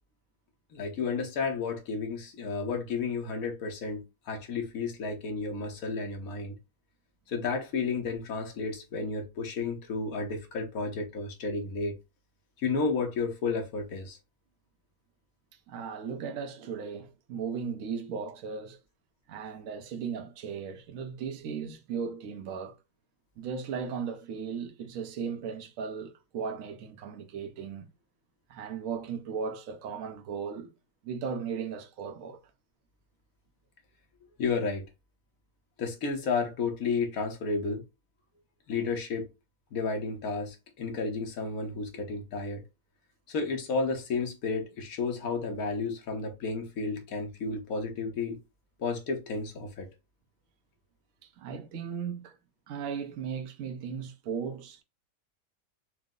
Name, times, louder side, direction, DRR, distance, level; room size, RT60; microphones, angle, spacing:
voice 1, 0.7-6.6 7.3-11.9 12.6-14.2 34.4-34.8 35.8-37.8 38.7-39.3 39.7-42.6 43.3-48.4 48.8-49.9, left 4 dB, 70° left, 1.4 m, -32 dB
voice 2, 15.7-18.8 19.3-22.8 23.4-27.9 28.5-30.7 31.0-32.4 51.4-52.4 52.7-54.8, right 6 dB, 70° right, 1.1 m, -36 dB
4.7 x 2.1 x 3.6 m
omnidirectional pair, 1.5 m